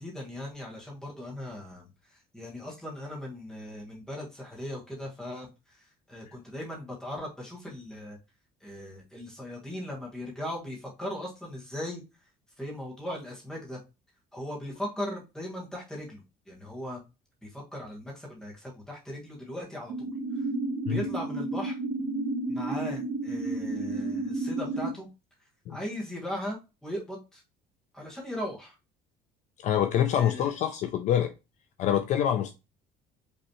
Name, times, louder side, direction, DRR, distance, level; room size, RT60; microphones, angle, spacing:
voice 1, 0.0-8.2 8.6-12.0 12.6-13.8 14.3-17.0 17.4-20.1 20.3-20.5 20.9-21.8 22.5-25.1 25.4-27.4 27.9-28.8 30.1-30.5, left 1 dB, 5° left, 1.4 m, -38 dB
sound 1, 19.9-24.9, right 2 dB, 55° right, 1.6 m, -31 dB
voice 2, 29.6-31.3 31.8-32.5, left 10 dB, 45° left, 0.4 m, -26 dB
5.4 x 3.1 x 3.0 m
cardioid pair, 170°, 17 cm